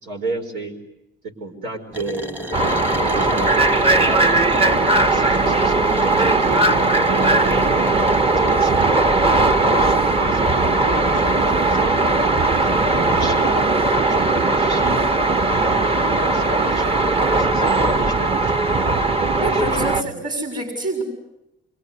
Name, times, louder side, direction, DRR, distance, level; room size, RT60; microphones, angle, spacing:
voice 1, 0.0-0.8 1.2-2.6 3.1-6.7 7.1-7.7 8.1-9.1 9.4-12.1 12.7-13.5 14.1-15.0 15.5-18.8 19.2-20.1, right 2 dB, 90° right, 3 dB, 5.3 m, -32 dB
sound 1, 1.9-9.1, left 1 dB, 10° right, 1.1 m, -33 dB
sound 2, 2.5-20.0, right 2 dB, 30° right, 1.1 m, -18 dB
sound 3, 5.0-8.1 19.4-20.1, left 1 dB, 70° right, 5.1 m, -40 dB
voice 2, 19.4-21.0, right 2 dB, 45° right, 5 dB, 6.5 m, -26 dB
26.5 x 23.5 x 9.6 m, 0.87 s
cardioid pair, 90°, 20 cm